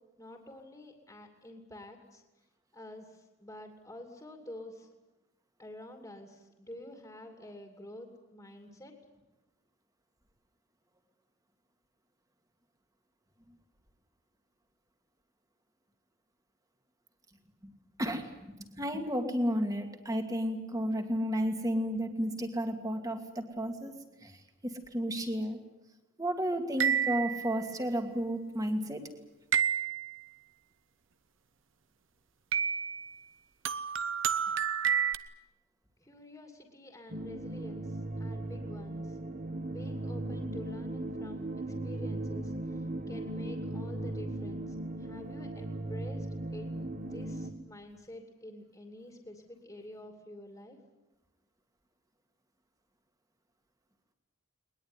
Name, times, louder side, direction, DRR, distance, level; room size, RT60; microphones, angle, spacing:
voice 1, 0.2-2.2 2.7-4.9 5.6-8.9 36.0-39.2 39.7-46.7 47.1-50.8, left 1 dB, 15° left, 3 dB, 2.7 m, -48 dB
voice 2, 18.0-23.9 24.2-24.4 24.6-25.6 26.2-29.1, equal, 15° right, 5 dB, 2.4 m, -32 dB
sound 1, 26.8-27.6 29.5-30.2 32.5-33.1 33.7-35.2, right 8 dB, 65° right, 1.0 m, -29 dB
sound 2, 37.1-47.5, right 2 dB, 40° right, 1.5 m, -37 dB
21.0 x 20.5 x 9.7 m, 1.0 s
head